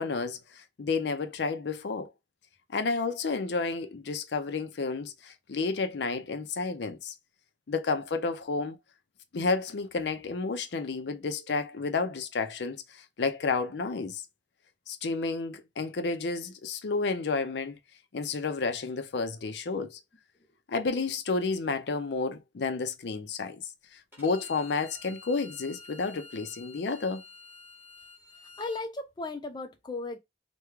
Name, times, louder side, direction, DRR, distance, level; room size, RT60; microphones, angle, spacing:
voice 1, 0.0-2.1 2.7-7.1 7.7-8.8 9.3-14.2 14.9-17.8 18.1-20.0 20.7-23.6 23.9-27.2, left 4 dB, 75° left, 0.5 m, -31 dB
Bowed string instrument, 24.1-28.8, left 3 dB, 10° right, 1.4 m, -50 dB
voice 2, 28.6-30.2, left 3 dB, 25° left, 0.4 m, -36 dB
3.5 x 2.2 x 3.0 m
head